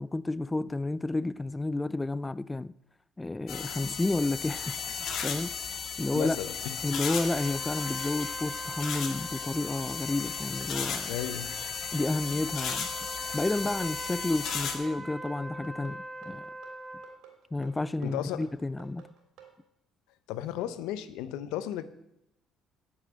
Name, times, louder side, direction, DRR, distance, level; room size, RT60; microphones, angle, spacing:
voice 1, 0.0-2.7 3.2-6.4 6.8-11.1 11.9-12.9 13.3-16.5 17.5-19.0, left 2 dB, 15° left, 0.4 m, -31 dB
sound 1, 3.5-14.8, left 6 dB, 65° left, 2.0 m, -35 dB
voice 2, 6.1-6.7 11.1-11.5 18.0-18.5 20.3-21.8, left 12 dB, 80° left, 0.8 m, -34 dB
sound 2, 7.3-17.2, right 1 dB, 10° right, 1.6 m, -43 dB
sound 3, 9.8-19.5, right 9 dB, 75° right, 3.3 m, -53 dB
9.2 x 7.2 x 8.9 m
supercardioid pair, 70°, 0 cm